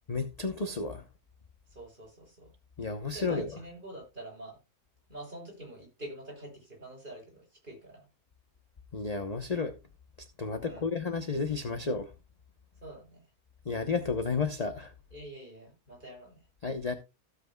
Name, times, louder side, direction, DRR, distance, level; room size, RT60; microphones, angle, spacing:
voice 1, 0.1-1.0 2.8-3.6 8.9-9.8 10.2-12.1 13.6-14.9 16.6-16.9, left 4 dB, 30° left, 0.8 m, -32 dB
voice 2, 1.7-2.5 3.1-4.6 5.1-8.0 10.6-10.9 12.8-13.2 15.1-16.4, right 1 dB, 30° right, 6.9 m, -46 dB
16.0 x 8.0 x 2.3 m
omnidirectional pair, 1.6 m